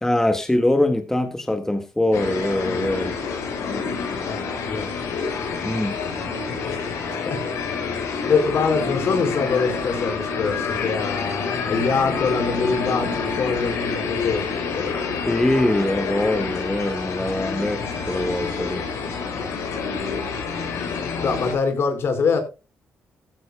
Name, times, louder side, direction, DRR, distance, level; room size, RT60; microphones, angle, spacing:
voice 1, 0.0-3.1 5.6-6.0 15.3-18.9, left 1 dB, 10° left, 1.8 m, -23 dB
sound 1, 2.1-21.5, left 5 dB, 85° left, 6.7 m, -28 dB
voice 2, 4.2-4.9 6.6-6.9 7.2-7.4 8.3-14.4 14.7-14.9 21.2-22.4, left 5 dB, 60° left, 4.8 m, -24 dB
15.5 x 14.0 x 2.2 m
cardioid pair, 100°, 5 cm